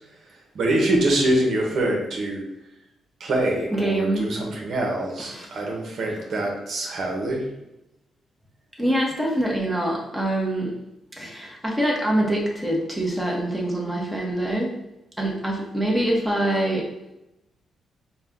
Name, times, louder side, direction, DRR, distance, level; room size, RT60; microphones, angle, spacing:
voice 1, 0.5-2.4 3.2-7.5, right 1 dB, 65° right, 0 dB, 1.0 m, -24 dB
voice 2, 3.7-4.4 5.2-5.5 8.8-10.7 11.1-14.7 15.2-16.9, right 1 dB, 5° right, -3 dB, 1.1 m, -24 dB
4.1 x 2.4 x 3.7 m, 0.91 s
cardioid pair, 75°, 0 cm